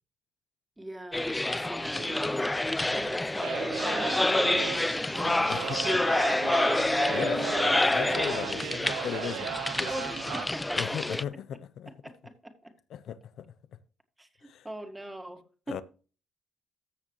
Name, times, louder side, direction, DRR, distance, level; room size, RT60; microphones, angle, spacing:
voice 1, 0.8-2.5 2.9-5.6 5.8-6.5 9.9-11.0 11.9-12.7 14.2-14.3 14.6-15.4 15.7-15.8, right 1 dB, 10° right, 1.9 m, -41 dB
sound 1, 1.1-11.2, left 2 dB, 10° left, 0.3 m, -28 dB
sound 2, 1.9-8.8, right 3 dB, 50° right, 3.1 m, -42 dB
sound 3, 3.4-10.5, right 13 dB, 90° right, 0.5 m, -37 dB
voice 2, 5.5-6.0 7.1-10.1 10.8-11.9 12.9-13.5 14.4-14.7 15.7-15.8, left 9 dB, 70° left, 0.5 m, -37 dB
14.5 x 6.6 x 3.1 m
cardioid pair, 90°, 0 cm